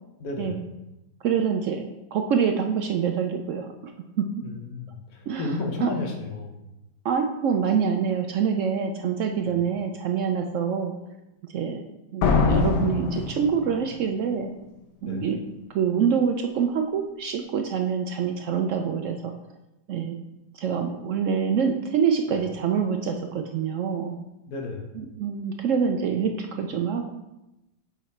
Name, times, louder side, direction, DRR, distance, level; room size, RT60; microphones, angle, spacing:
voice 1, 0.2-0.7 4.4-6.6 9.4-9.6 15.0-15.3 22.3-22.5 24.5-25.0, left 3 dB, 65° left, 2 dB, 1.5 m, -33 dB
voice 2, 1.2-3.7 4.2-4.3 5.3-5.5 5.8-5.9 7.0-10.9 11.5-11.9 12.1-14.5 15.0-15.4 15.7-19.3 19.9-20.2 20.5-24.2 25.2-27.1, right 7 dB, 75° right, 4 dB, 0.7 m, -25 dB
sound 1, 12.2-14.0, left 4 dB, 80° left, 1.4 m, -23 dB
7.1 x 4.1 x 4.3 m, 0.95 s
omnidirectional pair, 1.8 m